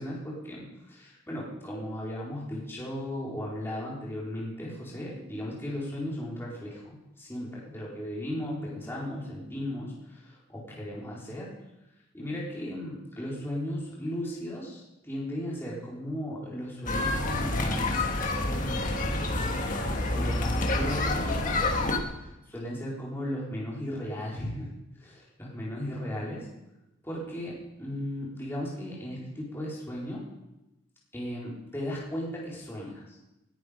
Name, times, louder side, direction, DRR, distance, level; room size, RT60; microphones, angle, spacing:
voice 1, 0.0-11.6 12.1-18.1 18.4-19.0 20.1-24.7 25.0-26.5 27.0-30.3 31.1-33.3, left 1 dB, 10° left, -6 dB, 4.2 m, -36 dB
sound 1, 16.9-22.0, left 2 dB, 40° left, 1.5 m, -28 dB
20.0 x 10.5 x 5.1 m, 0.96 s
head